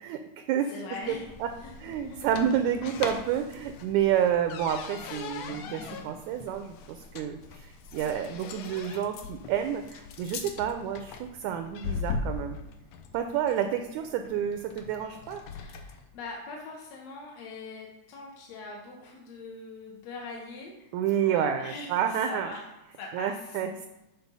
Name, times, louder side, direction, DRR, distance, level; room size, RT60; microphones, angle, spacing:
voice 1, 0.6-2.3 8.0-8.3 15.5-23.6, left 3 dB, 70° left, -1 dB, 1.7 m, -43 dB
sound 1, 1.0-16.0, left 5 dB, 90° left, 1.4 m, -40 dB
voice 2, 1.8-12.6 13.1-15.4 20.9-22.5 23.1-23.9, right 9 dB, 80° right, 7 dB, 1.7 m, -29 dB
8.2 x 4.2 x 5.3 m, 0.94 s
omnidirectional pair, 3.7 m